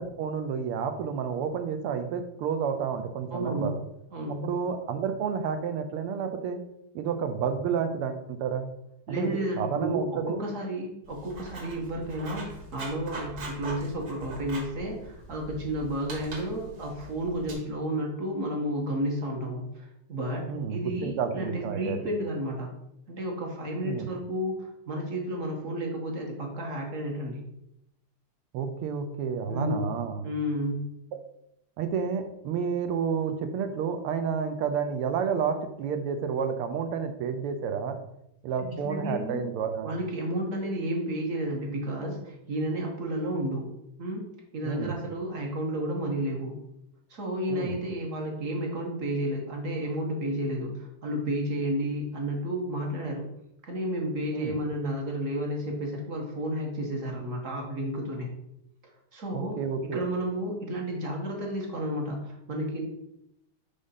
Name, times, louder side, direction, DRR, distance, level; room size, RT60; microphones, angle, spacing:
voice 1, 0.0-3.8 4.4-6.6 6.9-8.7 9.1-10.4 20.5-22.0 23.8-24.1 28.5-30.3 31.8-38.0 38.4-39.9 44.6-45.0 47.5-47.8 54.3-54.6 59.3-60.0, right 6 dB, 90° right, 7 dB, 1.6 m, -30 dB
voice 2, 3.3-3.7 4.1-4.4 9.1-22.7 23.1-27.4 29.5-29.8 30.2-30.8 38.6-39.4 39.8-43.7 44.0-44.3 44.5-46.6 47.1-53.3 53.6-58.3 59.1-62.8, right 1 dB, 45° right, 0 dB, 1.2 m, -32 dB
Writing, 11.0-17.5, right 2 dB, 65° right, 2.1 m, -42 dB
5.1 x 3.5 x 5.5 m, 0.82 s
omnidirectional pair, 2.4 m